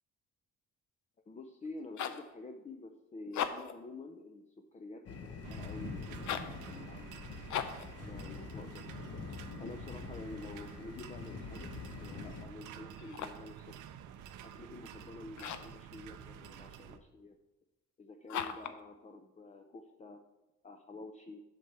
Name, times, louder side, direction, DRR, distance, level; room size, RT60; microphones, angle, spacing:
voice 1, 1.3-7.2 8.0-8.9 9.6-13.8 14.4-17.4 18.0-20.2 20.6-21.4, left 2 dB, 25° left, 5 dB, 0.6 m, -49 dB
sound 1, 1.7-2.3 3.2-3.8 6.2-6.6 7.5-7.9 12.9-13.5 15.3-15.8 18.3-18.8, left 9 dB, 70° left, 0.7 m, -38 dB
sound 2, 5.1-12.5, left 5 dB, 50° left, 1.0 m, -45 dB
sound 3, 5.4-17.0, right 9 dB, 80° right, 0.6 m, -50 dB
7.9 x 4.3 x 6.7 m, 1.0 s
cardioid pair, 90°, 30 cm